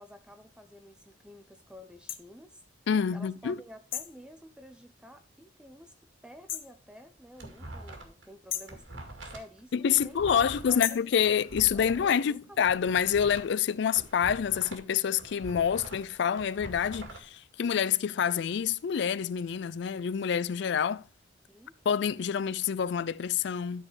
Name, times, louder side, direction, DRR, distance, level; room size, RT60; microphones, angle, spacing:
voice 1, 0.0-2.6 3.1-5.9 6.2-8.8 9.2-11.0 11.5-12.6 21.5-21.7, equal, 5° right, 0.7 m, -50 dB
sound 1, 2.1-2.2 3.9-4.2 6.5-6.8 8.5-8.8 10.8-11.1, left 12 dB, 90° left, 0.8 m, -35 dB
voice 2, 2.9-3.6 9.7-21.0 21.9-23.8, left 8 dB, 65° left, 0.4 m, -27 dB
sound 2, 7.0-8.3 8.5-12.1 12.5-14.9 15.2-17.2, right 1 dB, 90° right, 2.2 m, -44 dB
12.0 x 4.3 x 4.8 m
head